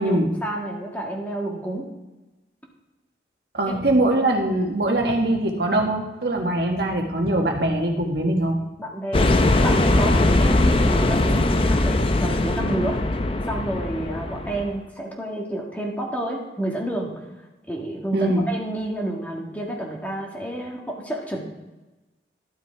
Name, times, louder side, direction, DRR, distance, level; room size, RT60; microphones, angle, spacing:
voice 1, 0.0-1.8 3.7-3.8 8.8-13.0 13.5-17.1 17.7-21.4, right 1 dB, 10° left, -2 dB, 1.7 m, -29 dB
voice 2, 3.5-8.6 18.1-18.4, right 1 dB, 65° right, 1 dB, 1.5 m, -22 dB
sound 1, 9.1-14.7, left 2 dB, 30° left, 0.5 m, -20 dB
12.0 x 6.1 x 4.5 m, 1.1 s
head